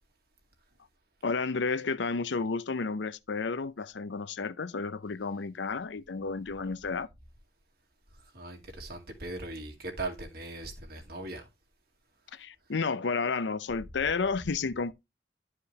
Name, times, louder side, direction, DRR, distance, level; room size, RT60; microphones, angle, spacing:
voice 1, 1.2-7.1 12.3-14.9, left 4 dB, 80° left, 0.6 m, -31 dB
voice 2, 8.3-11.4, right 2 dB, 55° right, 2.1 m, -39 dB
11.5 x 5.0 x 3.1 m
head